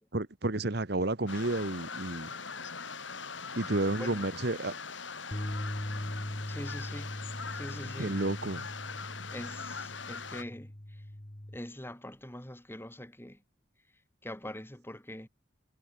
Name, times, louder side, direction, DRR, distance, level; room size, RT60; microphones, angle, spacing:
voice 1, 0.1-2.3 3.6-4.7 8.0-8.7, right 2 dB, 55° right, 1.4 m, -31 dB
sound 1, 1.3-10.4, left 5 dB, 70° left, 4.9 m, -41 dB
voice 2, 3.9-4.3 6.5-7.2 7.5-8.2 9.3-11.1 11.5-13.4 14.2-15.3, left 1 dB, 10° left, 2.7 m, -43 dB
sound 2, 5.3-11.6, left 1 dB, 25° left, 1.6 m, -40 dB
head